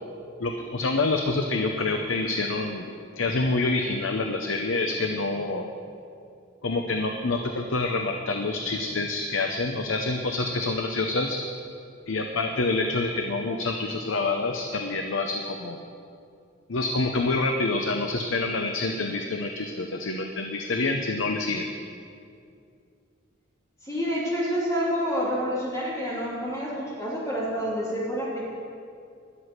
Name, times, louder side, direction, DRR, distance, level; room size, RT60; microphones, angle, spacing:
voice 1, 0.4-5.7 6.6-11.4 12.1-15.8 16.7-21.7, left 3 dB, 80° left, 4 dB, 0.8 m, -27 dB
voice 2, 23.8-28.4, equal, 15° left, -6 dB, 3.0 m, -28 dB
13.0 x 6.2 x 9.7 m, 2.4 s
head